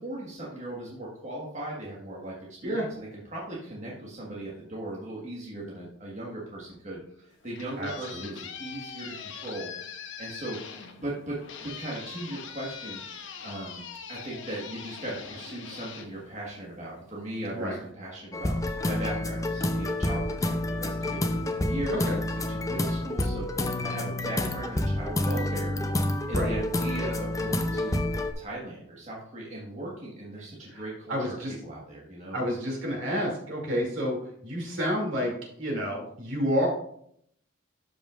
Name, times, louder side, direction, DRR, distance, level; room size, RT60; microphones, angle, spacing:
voice 1, 0.0-10.6 11.0-13.0 13.4-25.7 26.3-28.0 28.4-31.4 31.6-32.4, right 1 dB, 35° right, -5 dB, 1.5 m, -38 dB
sound 1, 7.3-17.0, left 7 dB, 65° left, 0.8 m, -42 dB
voice 2, 7.8-8.3 17.5-17.8 21.9-22.2 26.3-26.5 30.7-30.8 31.1-31.5 32.3-35.3 35.6-36.7, equal, 70° right, -1 dB, 2.6 m, -29 dB
sound 2, 18.3-28.3, left 1 dB, 15° left, 0.5 m, -28 dB
12.0 x 5.4 x 2.4 m, 0.68 s
head